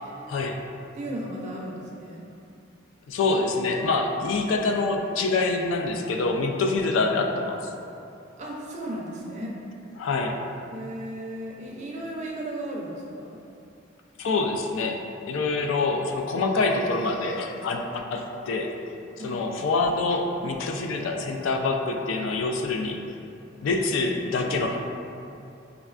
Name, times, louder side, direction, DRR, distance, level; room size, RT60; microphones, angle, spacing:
voice 1, 0.3-0.6 3.1-7.7 10.0-10.4 14.2-18.7 19.2-23.0 23.6-24.8, left 3 dB, 80° left, 3 dB, 0.3 m, -26 dB
voice 2, 1.0-2.3 8.4-9.6 10.7-13.4 19.2-19.4, right 1 dB, 35° right, -2 dB, 0.4 m, -35 dB
4.9 x 2.2 x 2.3 m, 2.7 s
head